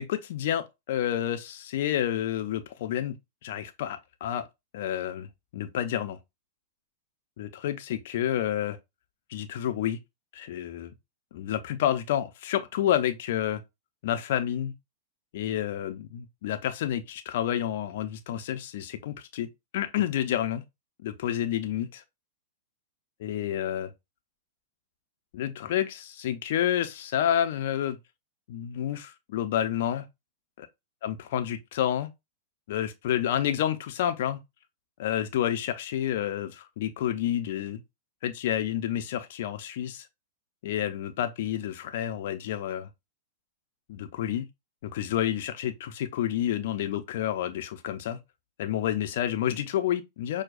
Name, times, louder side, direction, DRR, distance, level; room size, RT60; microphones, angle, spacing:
voice 1, 0.0-3.1 3.4-4.5 4.7-5.3 5.5-6.2 7.4-8.8 9.3-10.0 10.3-10.9 11.3-13.6 14.0-14.7 15.3-19.5 19.7-20.6 21.0-22.0 23.2-23.9 25.3-28.0 28.5-30.1 31.0-32.1 32.7-34.4 35.0-37.8 38.2-40.1 40.6-42.9 43.9-44.5 44.8-48.2 48.6-50.4, left 11 dB, 60° left, 0.6 m, -29 dB
6.0 x 2.3 x 2.5 m
hypercardioid pair, 105°, 0 cm